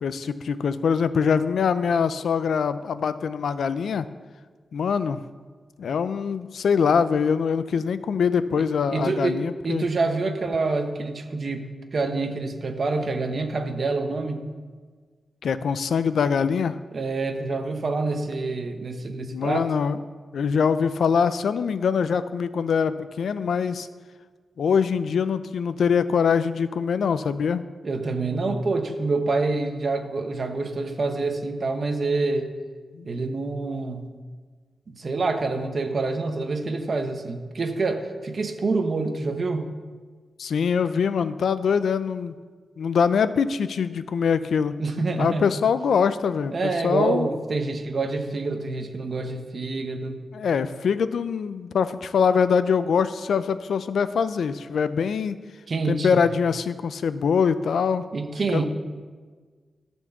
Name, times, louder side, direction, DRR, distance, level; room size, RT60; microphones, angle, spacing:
voice 1, 0.0-4.1 4.7-5.2 5.8-9.9 15.4-16.8 19.3-20.0 20.3-23.9 24.6-27.7 32.9-33.1 40.4-42.4 42.8-44.8 45.2-47.3 50.3-55.4 55.9-58.0 58.5-58.6, left 6 dB, 90° left, 13 dB, 0.4 m, -23 dB
voice 2, 8.9-14.4 16.9-19.7 27.8-32.5 33.0-34.1 34.9-39.7 44.8-45.5 46.5-50.2 55.7-56.2 58.1-58.6, right 3 dB, 45° right, 5 dB, 0.9 m, -27 dB
13.0 x 4.5 x 7.0 m, 1.5 s
wide cardioid pair, 135°, 0 cm